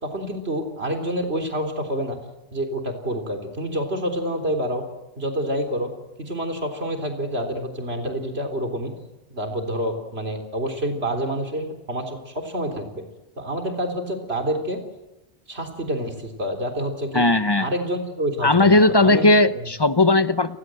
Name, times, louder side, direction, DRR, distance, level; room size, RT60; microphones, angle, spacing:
voice 1, 0.0-2.2 2.5-4.9 5.2-5.9 6.2-8.9 9.3-13.0 13.4-14.8 15.5-17.2 17.6-19.3, equal, 90° right, 5 dB, 4.0 m, -27 dB
voice 2, 17.1-17.7 18.4-20.6, left 2 dB, 25° left, 12 dB, 0.9 m, -17 dB
29.5 x 20.0 x 7.8 m, 1.0 s
omnidirectional pair, 1.0 m